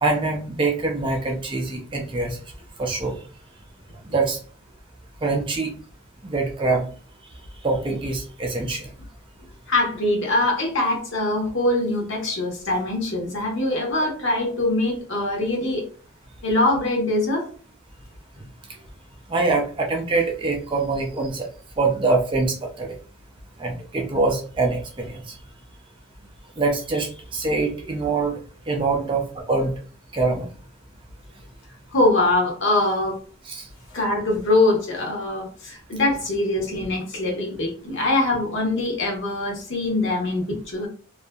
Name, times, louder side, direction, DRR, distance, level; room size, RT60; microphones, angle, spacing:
voice 1, 0.0-2.4 2.8-3.2 4.1-4.4 5.2-5.7 6.2-6.9 7.6-8.9 19.3-21.5 21.8-23.0 23.6-25.2 26.6-28.3 28.7-29.7 30.1-30.5 33.5-33.6, right 3 dB, 20° right, 1 dB, 0.3 m, -24 dB
voice 2, 9.7-15.8 16.4-17.5 28.9-29.1 31.9-33.2 33.9-40.9, left 2 dB, 55° left, 0 dB, 0.9 m, -23 dB
2.6 x 2.4 x 2.2 m, 0.40 s
head